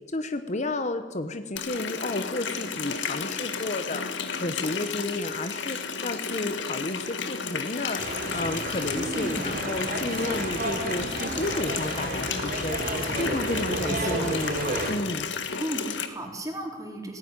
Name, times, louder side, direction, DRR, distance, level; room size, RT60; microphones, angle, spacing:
voice 1, 0.1-12.8 13.2-15.3, left 2 dB, 40° left, 9 dB, 1.1 m, -32 dB
Water tap faucet, 1.6-16.1, left 5 dB, 85° left, 1.7 m, -33 dB
sound 1, 8.0-14.9, right 2 dB, 55° right, 4.0 m, -32 dB
voice 2, 9.0-9.5 13.8-14.3 15.6-17.2, right 1 dB, 20° right, 2 dB, 3.8 m, -34 dB
18.0 x 16.0 x 9.9 m, 1.4 s
head